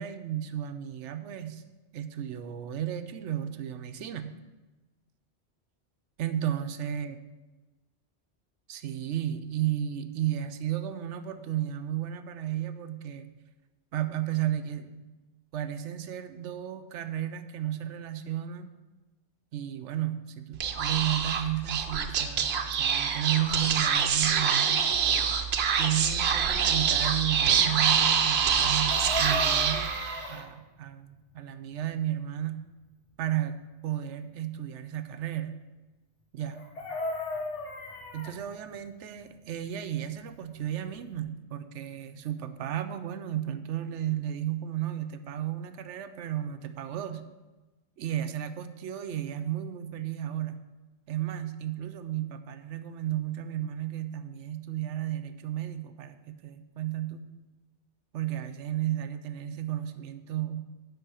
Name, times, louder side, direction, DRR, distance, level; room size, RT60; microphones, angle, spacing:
voice 1, 0.0-1.6 1.9-4.3 6.2-7.2 8.7-13.3 13.9-15.0 15.5-18.7 19.5-24.9 25.8-29.9 30.3-32.6 33.2-35.6 36.3-36.6 38.1-47.2 48.0-50.6 51.1-57.3 58.1-60.6, right 11 dB, 90° right, 10 dB, 1.0 m, -33 dB
Speech / Whispering, 20.5-30.3, right 7 dB, 65° right, 0.9 m, -26 dB
Chicken rooster, 28.6-30.5 36.5-38.4 40.6-40.7 41.0-41.2, left 2 dB, 85° left, 1.6 m, -36 dB
10.0 x 4.3 x 6.8 m, 1.1 s
omnidirectional pair, 1.2 m